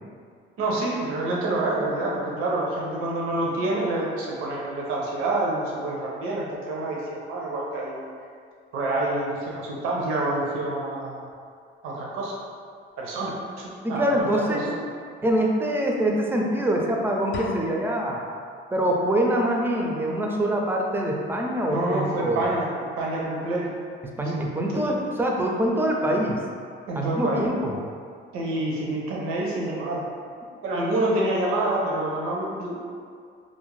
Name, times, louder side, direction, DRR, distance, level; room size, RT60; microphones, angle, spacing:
voice 1, 0.6-8.0 8.7-11.2 11.8-12.3 13.0-14.7 21.7-22.7 23.0-23.7 24.3-24.9 26.9-27.4 28.3-30.1 30.6-32.8, right 2 dB, 90° right, -4 dB, 0.6 m, -27 dB
voice 2, 13.8-14.6 15.2-18.3 18.7-22.4 24.2-26.4 27.0-27.8, right 1 dB, 10° right, -1 dB, 0.4 m, -24 dB
sound 1, 17.3-18.3, left 3 dB, 60° left, 0.4 m, -36 dB
2.4 x 2.0 x 3.1 m, 2.2 s
cardioid pair, 95°, 21 cm